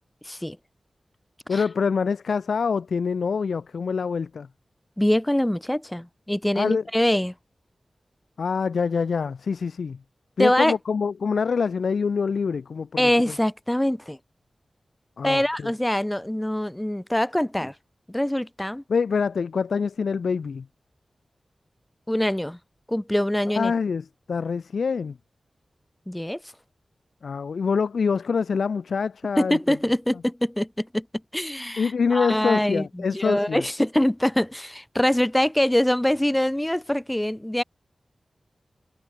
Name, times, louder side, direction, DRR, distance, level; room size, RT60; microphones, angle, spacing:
voice 1, 0.2-0.6 1.5-1.6 5.0-7.3 10.4-10.7 13.0-14.2 15.2-17.7 18.1-18.8 22.1-22.6 22.9-23.7 26.1-26.4 29.4-31.1 31.3-37.6, left 1 dB, 10° left, 0.4 m, -24 dB
voice 2, 1.5-4.5 6.5-6.8 8.4-10.0 10.4-13.3 15.2-15.7 18.9-20.7 23.6-25.2 27.2-29.6 31.8-33.6, left 5 dB, 85° left, 0.8 m, -25 dB
wide cardioid pair, 100°, 0 cm